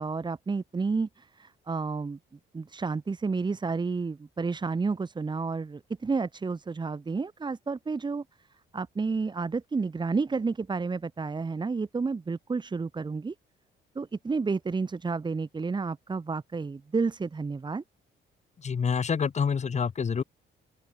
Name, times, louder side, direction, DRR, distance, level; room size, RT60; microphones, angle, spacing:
voice 1, 0.0-2.2 2.5-8.2 8.7-13.3 13.9-17.8, right 4 dB, 20° right, 0.9 m, -31 dB
voice 2, 18.6-20.2, left 6 dB, 35° left, 1.1 m, -27 dB
open air
cardioid pair, 90°, 20 cm